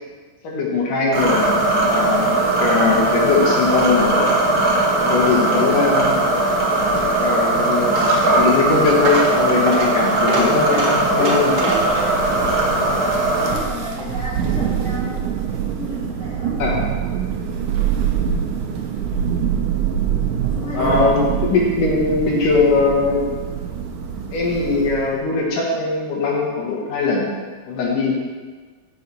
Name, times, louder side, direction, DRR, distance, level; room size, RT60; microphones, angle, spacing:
voice 1, 0.4-1.5 1.9-4.2 5.0-6.2 7.2-8.0 8.3-11.7 12.8-12.9 16.6-16.8 20.7-23.2 24.3-27.3 27.7-28.1, left 3 dB, 80° left, -2 dB, 3.3 m, -20 dB
sound 1, 1.1-13.5, right 2 dB, 40° right, 1.6 m, -19 dB
Coin (dropping), 6.7-14.3, right 2 dB, 55° right, 2.6 m, -27 dB
Thunder, 11.6-25.2, right 8 dB, 75° right, 2.4 m, -25 dB
voice 2, 13.4-15.3 15.7-16.6 20.4-21.2, left 2 dB, 25° left, -8 dB, 3.3 m, -32 dB
13.5 x 6.3 x 4.6 m, 1.4 s
omnidirectional pair, 3.6 m